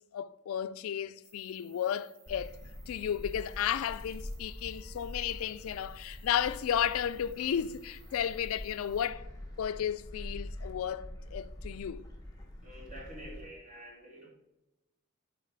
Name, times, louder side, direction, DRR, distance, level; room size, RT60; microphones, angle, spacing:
voice 1, 0.1-2.5 2.9-9.3 9.6-12.1, left 9 dB, 80° left, 0.3 m, -33 dB
sound 1, 1.2-9.1, right 6 dB, 85° right, 1.4 m, -62 dB
Gull seagull, 2.3-13.5, left 1 dB, 20° left, 1.1 m, -45 dB
voice 2, 12.6-14.3, right 1 dB, 35° right, 2.3 m, -48 dB
7.3 x 4.2 x 4.5 m
head